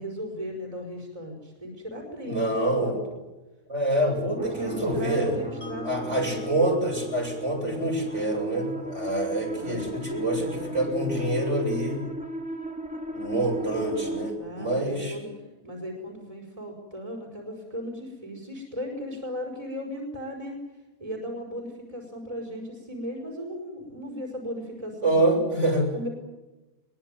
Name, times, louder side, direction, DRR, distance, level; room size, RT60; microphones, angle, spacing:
voice 1, 0.0-2.9 4.4-6.5 9.5-11.2 14.4-15.3 15.6-20.6 21.0-25.4 25.9-26.1, equal, 25° right, 0 dB, 5.3 m, -37 dB
voice 2, 2.2-3.0 3.7-5.3 5.8-12.0 13.1-15.1 25.0-25.9, right 1 dB, 55° right, -1 dB, 7.8 m, -26 dB
sound 1, 4.4-14.3, right 1 dB, 5° right, 2.7 m, -35 dB
Mallet percussion, 5.6-11.8, right 1 dB, 60° left, 3.5 m, -43 dB
23.0 x 22.5 x 9.2 m, 1.1 s
omnidirectional pair, 1.5 m